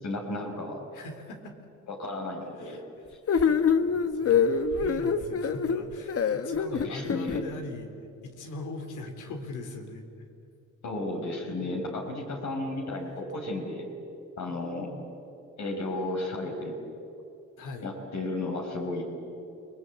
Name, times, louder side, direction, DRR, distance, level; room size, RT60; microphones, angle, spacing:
voice 1, 0.0-0.8 1.9-2.8 6.7-7.4 10.8-13.8 14.4-14.9 15.6-16.8 17.8-19.0, left 2 dB, 65° left, 1 dB, 5.0 m, -33 dB
voice 2, 0.9-1.7 2.6-2.8 3.4-7.9 8.2-10.1 17.6-17.9, left 2 dB, 90° left, 5 dB, 3.6 m, -40 dB
sound 1, 3.3-7.4, left 6 dB, 50° left, 1.4 m, -25 dB
29.5 x 20.0 x 8.6 m, 2.7 s
cardioid pair, 90°, 30 cm